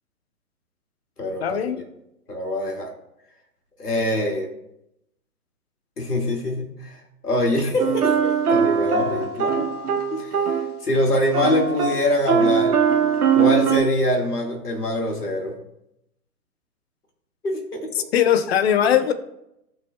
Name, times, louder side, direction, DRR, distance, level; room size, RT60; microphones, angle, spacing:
voice 1, 1.4-1.8 9.2-9.3 18.0-19.1, left 9 dB, 45° left, 11 dB, 0.7 m, -20 dB
voice 2, 2.3-2.9 3.8-4.5 6.0-9.7 10.1-12.8 13.3-15.6 17.4-18.1, equal, 90° left, 1 dB, 2.1 m, -24 dB
sound 1, 7.8-10.8 11.3-13.8, right 6 dB, 75° right, 1.4 m, -21 dB
16.5 x 5.5 x 2.3 m, 0.83 s
figure-of-eight pair, 130°, 45 cm